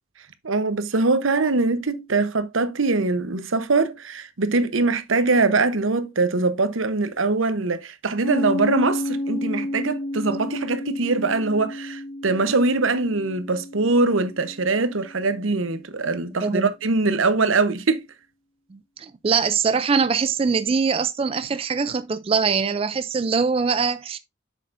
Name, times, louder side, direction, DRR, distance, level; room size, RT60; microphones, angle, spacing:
voice 1, 0.4-18.0, right 3 dB, 80° right, 0.9 m, -22 dB
Piano, 8.2-15.4, left 1 dB, 65° left, 3.2 m, -31 dB
voice 2, 18.7-24.2, right 5 dB, 30° right, 0.3 m, -23 dB
7.6 x 6.6 x 2.5 m
head